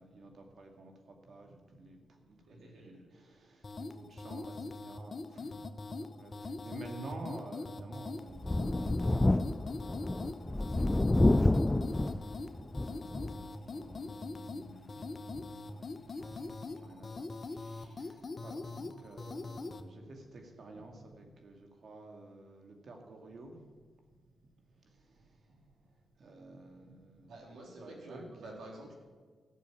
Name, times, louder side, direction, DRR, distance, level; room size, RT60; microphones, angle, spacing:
voice 1, 0.0-5.7 6.0-23.6 24.8-27.4 27.8-28.2, right 2 dB, 60° right, 3 dB, 2.3 m, -51 dB
voice 2, 2.5-3.0 27.3-28.9, right 1 dB, 75° right, -1 dB, 3.4 m, -49 dB
sound 1, 3.6-19.8, left 3 dB, 45° left, 0.8 m, -42 dB
Thunder, 8.4-13.5 13.9-14.0 15.3-15.4, left 2 dB, 20° left, 0.4 m, -29 dB
13.5 x 6.9 x 9.1 m, 1.5 s
supercardioid pair, 55°, 0 cm